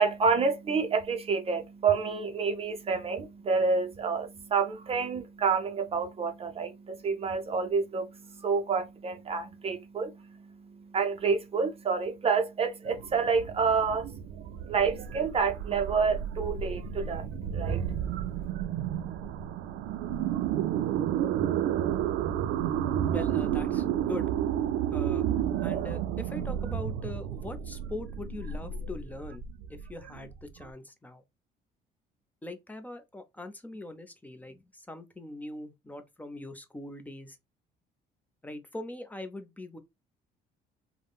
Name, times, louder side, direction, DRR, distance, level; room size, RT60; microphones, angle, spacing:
voice 1, 0.0-18.0, right 5 dB, 35° right, 0.5 m, -29 dB
sound 1, 12.8-30.6, right 10 dB, 85° right, 0.4 m, -31 dB
voice 2, 23.1-24.3 24.9-25.3 25.6-29.4 29.7-31.2 32.4-37.4 38.4-39.8, left 2 dB, 10° left, 0.6 m, -41 dB
3.5 x 2.1 x 2.3 m
cardioid pair, 110°, 17 cm